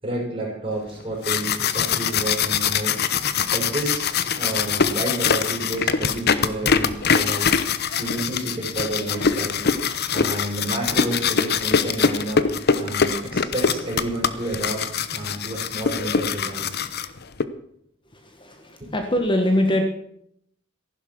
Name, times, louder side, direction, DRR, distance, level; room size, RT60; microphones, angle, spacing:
voice 1, 0.0-3.0 3.5-7.5 8.0-9.6 10.1-12.4 12.8-14.8 15.1-16.8 18.8-18.9, right 1 dB, 30° right, -3 dB, 6.2 m, -30 dB
sound 1, 1.0-17.4, left 6 dB, 55° left, 0.9 m, -23 dB
voice 2, 18.1-19.8, left 1 dB, 25° left, 4 dB, 1.5 m, -23 dB
15.0 x 11.5 x 6.2 m, 0.71 s
head